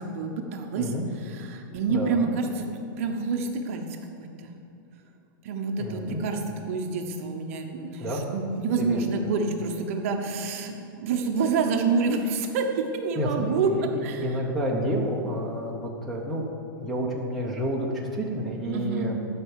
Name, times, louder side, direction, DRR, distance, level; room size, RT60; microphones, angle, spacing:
voice 1, 0.0-2.7 3.0-3.8 4.2-4.5 5.4-13.7 14.0-14.4 18.7-19.1, right 4 dB, 40° right, 4 dB, 0.9 m, -28 dB
voice 2, 0.8-1.1 1.9-2.3 5.8-6.2 8.0-8.2 8.8-9.3 13.1-16.4 16.8-19.2, equal, ahead, -6 dB, 0.8 m, -30 dB
11.5 x 5.8 x 7.2 m, 2.6 s
supercardioid pair, 175°, 11 cm